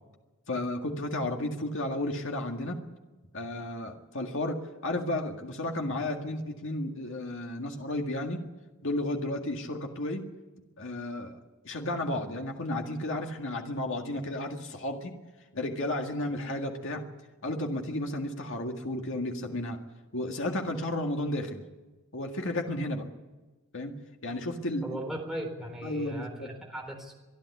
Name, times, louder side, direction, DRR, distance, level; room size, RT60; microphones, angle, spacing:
voice 1, 0.5-2.8 3.3-4.6 4.8-8.5 8.8-10.3 10.8-11.4 11.6-15.2 15.5-17.0 17.4-19.8 20.1-21.6 22.1-23.1 23.7-23.9 24.2-24.8 25.8-26.5, left 1 dB, 60° left, 3 dB, 1.9 m, -33 dB
voice 2, 24.8-27.2, right 1 dB, ahead, 1 dB, 3.9 m, -38 dB
25.5 x 11.0 x 9.7 m, 1.2 s
head